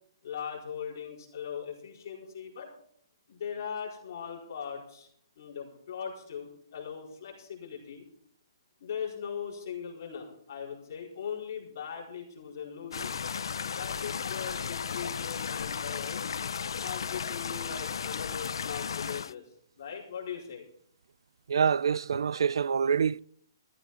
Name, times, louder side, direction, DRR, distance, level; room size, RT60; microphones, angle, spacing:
voice 1, 0.2-2.7 3.3-5.1 5.4-8.0 8.8-13.3 13.6-16.2 16.8-19.4 19.8-20.6, left 7 dB, 40° left, 4.6 m, -40 dB
sound 1, 12.9-19.3, left 6 dB, 70° left, 0.4 m, -35 dB
voice 2, 21.5-23.2, right 7 dB, 80° right, 0.4 m, -26 dB
14.5 x 14.0 x 4.2 m
hypercardioid pair, 180°, 2 cm